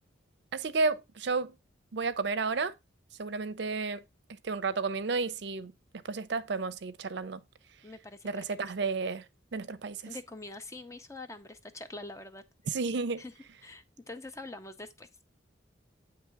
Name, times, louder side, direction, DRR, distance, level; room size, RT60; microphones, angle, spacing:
voice 1, 0.5-1.5 1.9-2.7 3.2-4.0 4.4-7.4 8.2-9.2 9.5-10.1 12.7-13.2, right 4 dB, 60° right, 0.5 m, -32 dB
voice 2, 7.8-8.3 10.1-12.4 13.2-13.3 13.6-15.1, left 2 dB, 15° left, 0.5 m, -44 dB
8.5 x 3.1 x 4.6 m
head